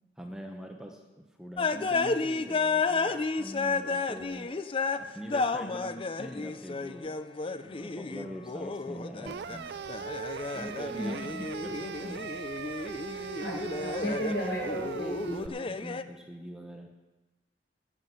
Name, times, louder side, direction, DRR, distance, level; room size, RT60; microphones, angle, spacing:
voice 1, 0.2-4.5 5.0-7.2 7.6-9.8 10.5-12.2 15.3-16.9, equal, 5° right, 2 dB, 0.9 m, -43 dB
sound 1, 1.6-5.0 5.3-9.6 9.8-14.3 14.6-16.0, left 4 dB, 30° left, 0.5 m, -32 dB
sound 2, 9.3-15.5, right 6 dB, 60° right, 0.3 m, -39 dB
voice 2, 10.9-11.4 13.4-15.5, equal, 70° left, -2 dB, 5.0 m, -34 dB
11.5 x 7.8 x 8.0 m, 1.1 s
head